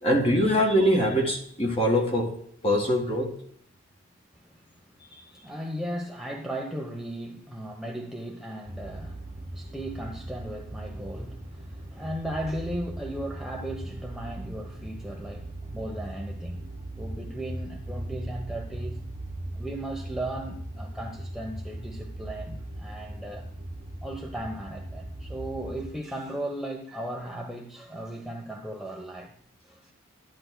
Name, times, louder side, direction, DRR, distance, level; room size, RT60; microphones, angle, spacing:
voice 1, 0.0-2.4 2.6-3.3, equal, 30° left, 1.8 m, -23 dB
voice 2, 4.3-4.7 5.1-16.6 17.0-19.0 19.5-23.5 24.0-29.3 29.7-29.8, right 1 dB, ahead, 0.8 m, -36 dB
sound 1, 8.7-25.9, right 1 dB, 30° right, 1.2 m, -39 dB
12.5 x 10.5 x 2.2 m
head